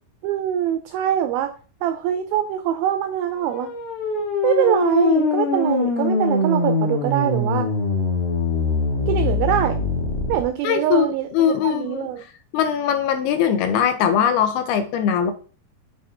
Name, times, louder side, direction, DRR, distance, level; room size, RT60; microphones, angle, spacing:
voice 1, 0.2-1.5 1.8-3.7 4.4-7.7 9.1-9.8 10.3-12.2, right 11 dB, 90° right, 8 dB, 2.1 m, -23 dB
sound 1, 3.3-10.4, left 3 dB, 65° left, 2.1 m, -22 dB
voice 2, 10.6-11.1 11.3-12.3 12.5-15.3, left 8 dB, 80° left, 8 dB, 2.4 m, -21 dB
8.2 x 4.2 x 3.5 m, 0.39 s
omnidirectional pair, 4.9 m